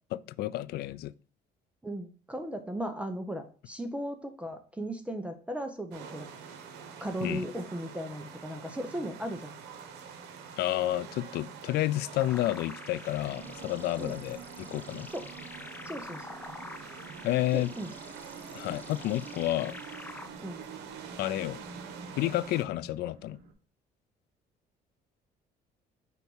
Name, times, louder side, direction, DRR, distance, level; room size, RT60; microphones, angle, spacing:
voice 1, 0.1-1.1 7.2-7.5 10.6-15.1 17.2-17.7 18.5-19.8 21.2-21.6 22.2-23.4, left 15 dB, 70° left, 0.4 m, -30 dB
voice 2, 1.8-6.3 7.0-9.5 14.0-14.2 15.1-15.3 15.8-16.3 17.5-17.9 20.4-20.6, right 1 dB, 5° right, 0.8 m, -37 dB
sound 1, 5.9-22.6, right 6 dB, 90° right, 1.0 m, -47 dB
sound 2, 12.2-20.3, left 2 dB, 10° left, 0.4 m, -47 dB
sound 3, 13.4-23.5, right 5 dB, 65° right, 1.2 m, -49 dB
4.6 x 4.1 x 5.4 m
cardioid pair, 110°, 17 cm